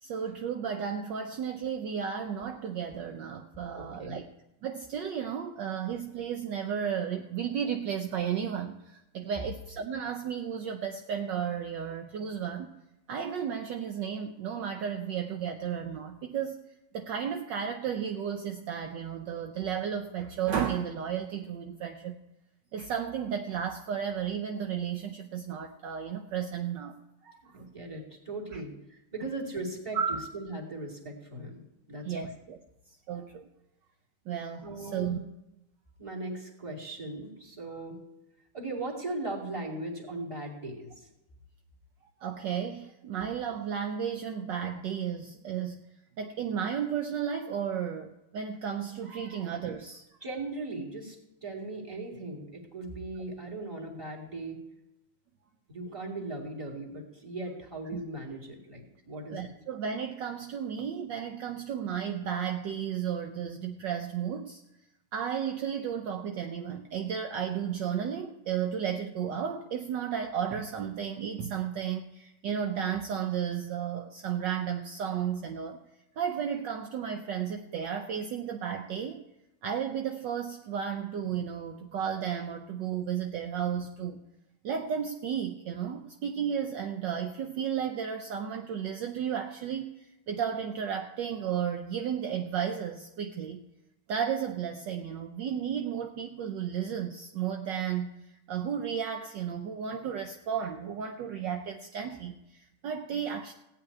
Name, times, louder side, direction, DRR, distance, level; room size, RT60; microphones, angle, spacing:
voice 1, 0.0-4.2 4.6-12.7 13.1-16.6 16.9-22.2 22.7-27.0 27.2-27.7 28.5-28.6 29.9-30.2 32.0-32.6 33.1-33.5 34.3-35.2 42.2-45.8 46.2-50.0 57.9-58.0 59.3-64.6 65.1-75.8 76.2-79.2 79.6-84.2 84.6-89.9 90.3-93.6 94.1-98.2 98.5-103.5, right 8 dB, 65° right, 5 dB, 1.3 m, -33 dB
voice 2, 3.7-4.1 9.2-9.3 27.5-32.3 34.6-35.2 36.0-38.0 38.5-41.1 50.2-54.6 55.7-59.5, right 2 dB, 15° right, -1 dB, 2.3 m, -38 dB
16.0 x 5.7 x 9.6 m, 0.91 s
omnidirectional pair, 2.3 m